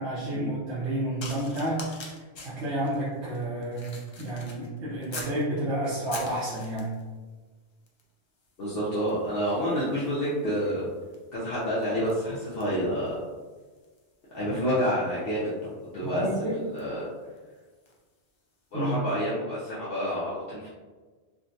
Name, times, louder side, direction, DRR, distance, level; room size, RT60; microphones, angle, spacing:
voice 1, 0.0-6.9 16.0-16.6 18.7-19.0, right 1 dB, 80° right, -10 dB, 1.1 m, -30 dB
sound 1, 1.2-5.4 5.8-7.1 7.9-8.1 8.4-18.1 18.8-18.9, left 2 dB, 45° left, 0.3 m, -46 dB
voice 2, 8.6-10.9 11.3-13.2 14.3-17.1 18.7-20.7, equal, 60° left, -9 dB, 0.9 m, -29 dB
3.7 x 2.2 x 2.6 m, 1.4 s
omnidirectional pair, 1.1 m